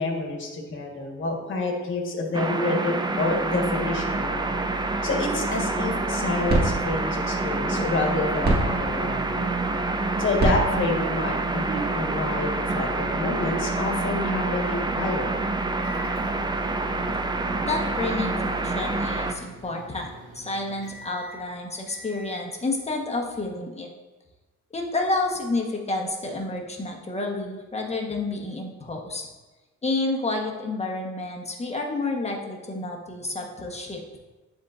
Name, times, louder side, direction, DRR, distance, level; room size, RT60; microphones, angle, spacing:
voice 1, 0.0-4.5 5.0-9.6 10.2-15.3, left 3 dB, 40° left, 0 dB, 1.4 m, -28 dB
sound 1, 2.3-19.3, right 2 dB, 15° right, 0.4 m, -27 dB
sound 2, 5.9-12.3, right 1 dB, 30° right, 1.7 m, -30 dB
sound 3, 13.4-22.5, right 1 dB, 70° right, 1.5 m, -47 dB
voice 2, 17.6-23.9 24.7-29.3 29.8-34.2, left 2 dB, 20° left, 1 dB, 1.1 m, -30 dB
10.5 x 3.7 x 2.5 m, 1.2 s
cardioid pair, 90°, 30 cm